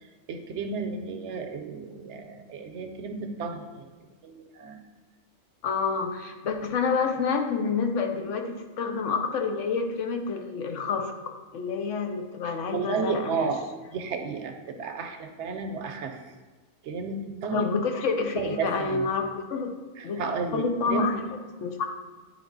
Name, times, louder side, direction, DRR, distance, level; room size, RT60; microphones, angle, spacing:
voice 1, 0.0-3.9 4.2-4.8 12.4-16.3 16.8-17.7 18.4-19.1 20.0-21.0, right 5 dB, 70° right, 6 dB, 0.9 m, -33 dB
voice 2, 5.6-13.5 17.5-19.7 20.0-20.2 20.5-21.1 21.6-21.8, left 5 dB, 75° left, 5 dB, 1.0 m, -28 dB
9.6 x 3.3 x 3.9 m, 1.3 s
omnidirectional pair, 1.3 m